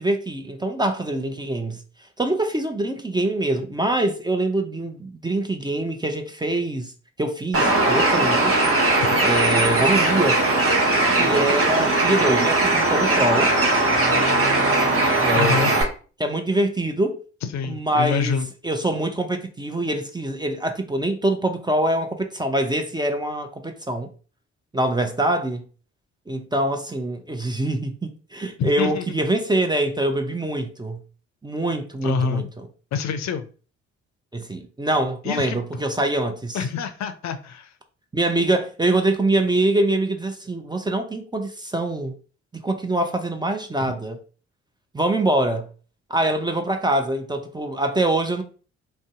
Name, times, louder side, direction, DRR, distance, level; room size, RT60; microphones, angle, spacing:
voice 1, 0.0-1.8 2.2-6.9 7.2-8.6 9.2-10.4 11.2-13.5 15.2-15.8 16.2-17.2 17.6-18.4 18.6-24.1 24.7-25.6 26.3-31.0 31.4-32.4 34.3-36.6 38.1-42.1 42.6-44.2 44.9-45.7 46.1-48.4, right 1 dB, 10° right, 0.5 m, -24 dB
Bird, 7.5-15.8, right 2 dB, 40° right, 1.1 m, -19 dB
voice 2, 15.3-15.8 17.4-18.5 28.6-29.1 32.0-32.5 32.9-33.5 35.2-35.6 36.5-37.7, left 6 dB, 50° left, 0.5 m, -26 dB
2.6 x 2.1 x 3.5 m
hypercardioid pair, 40°, 35 cm